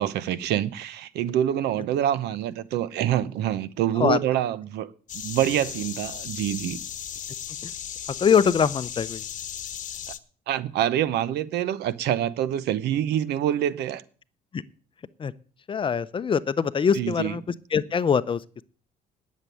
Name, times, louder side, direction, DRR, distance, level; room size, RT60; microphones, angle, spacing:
voice 1, 0.0-4.9 5.1-6.8 10.5-14.0 16.9-17.3, right 11 dB, 80° right, 0.9 m, -26 dB
sound 1, 5.1-10.2, left 9 dB, 50° left, 1.0 m, -36 dB
voice 2, 8.2-9.2 14.5-14.6 15.2-15.3 15.7-17.4 17.7-18.4, left 6 dB, 30° left, 0.6 m, -23 dB
9.8 x 7.4 x 9.2 m
cardioid pair, 110°, 17 cm